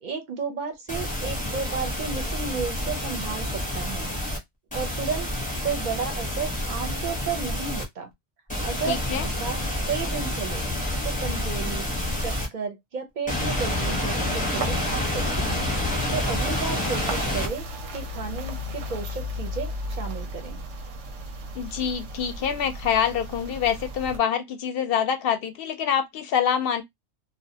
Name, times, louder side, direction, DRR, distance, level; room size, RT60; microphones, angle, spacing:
voice 1, 0.0-4.1 4.7-5.3 5.6-8.1 8.6-8.9 9.2-10.7 11.0-11.9 12.2-15.7 16.1-17.6 17.9-20.6, right 5 dB, 50° right, 0.6 m, -33 dB
sound 1, 0.9-4.4 4.7-7.8 8.5-12.5 13.3-17.5, left 1 dB, 10° left, 0.7 m, -28 dB
voice 2, 8.9-9.3 21.5-26.8, left 8 dB, 65° left, 0.7 m, -26 dB
sound 2, 13.4-24.2, equal, 90° right, 0.9 m, -36 dB
2.3 x 2.1 x 2.7 m
omnidirectional pair, 1.2 m